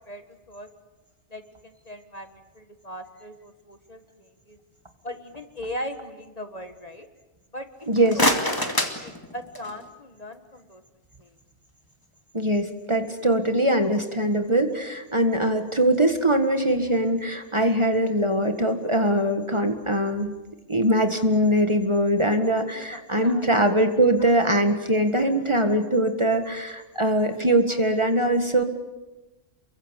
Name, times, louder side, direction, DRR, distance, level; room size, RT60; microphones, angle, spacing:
voice 1, 0.1-0.7 1.3-4.6 5.0-7.1 7.5-7.7 8.0-10.8 11.2-11.3 22.8-23.5 24.2-24.3 26.5-26.6 27.7-27.8, left 1 dB, 35° left, 7 dB, 1.7 m, -39 dB
sound 1, 7.8-9.9, left 1 dB, 20° left, 2.3 m, -26 dB
voice 2, 7.9-8.2 12.3-20.3 20.7-28.6, right 1 dB, 25° right, 6 dB, 1.7 m, -22 dB
28.5 x 23.0 x 8.2 m, 1.1 s
omnidirectional pair, 1.2 m